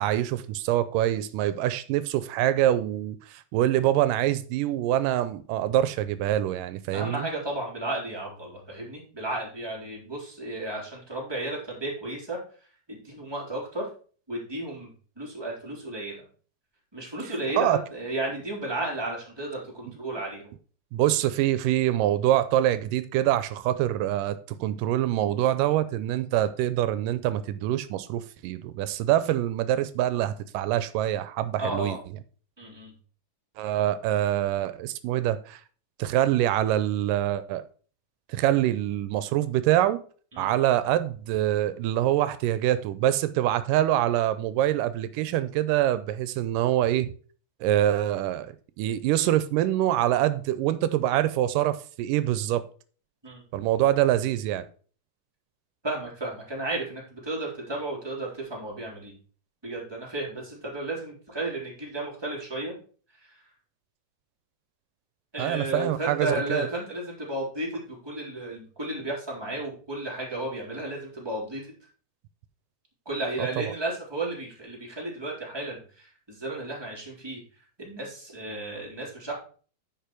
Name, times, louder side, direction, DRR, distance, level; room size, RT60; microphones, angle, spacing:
voice 1, 0.0-7.3 17.6-17.8 19.8-20.0 20.9-32.0 33.6-35.6 36.0-37.6 38.3-40.0 40.4-47.1 47.6-52.6 53.5-54.7 65.4-66.7 73.4-73.7, right 13 dB, 90° right, 2.3 m, -25 dB
voice 2, 6.9-12.4 12.9-13.9 14.3-14.9 15.2-16.2 16.9-20.4 31.6-32.0 32.6-32.9 40.3-40.5 53.2-53.4 55.8-59.1 59.6-62.7 63.2-63.3 65.3-71.6 73.0-77.4 77.8-79.3, right 2 dB, 10° right, 3.0 m, -33 dB
10.5 x 5.3 x 4.5 m
omnidirectional pair, 3.8 m